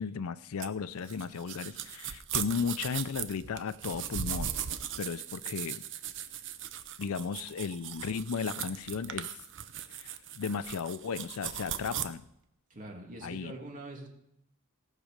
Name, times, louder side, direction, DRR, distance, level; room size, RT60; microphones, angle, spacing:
voice 1, 0.0-4.5 5.0-5.8 7.0-9.3 9.9-12.2 13.2-13.5, left 6 dB, 70° left, 16 dB, 0.5 m, -35 dB
sound 1, 0.6-12.0, right 9 dB, 60° right, 0.7 m, -38 dB
voice 2, 12.7-14.1, right 2 dB, 40° right, 0 dB, 2.5 m, -44 dB
18.0 x 6.5 x 5.1 m, 0.80 s
head